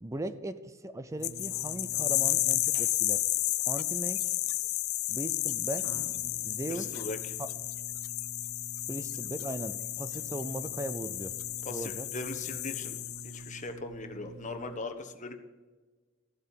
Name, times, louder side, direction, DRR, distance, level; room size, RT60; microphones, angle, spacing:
voice 1, 0.0-3.2 3.7-4.4 5.1-5.9 6.4-6.9 7.4-7.5 8.9-11.3 11.7-12.1, right 1 dB, 15° right, 12 dB, 0.5 m, -38 dB
sound 1, 1.1-14.8, right 3 dB, 75° right, 3.4 m, -49 dB
sound 2, 1.2-13.5, left 19 dB, 75° left, 0.4 m, -32 dB
voice 2, 6.7-7.4 11.6-13.0 13.2-15.4, left 3 dB, 35° left, 6 dB, 1.3 m, -39 dB
14.5 x 7.8 x 7.4 m, 1.3 s
head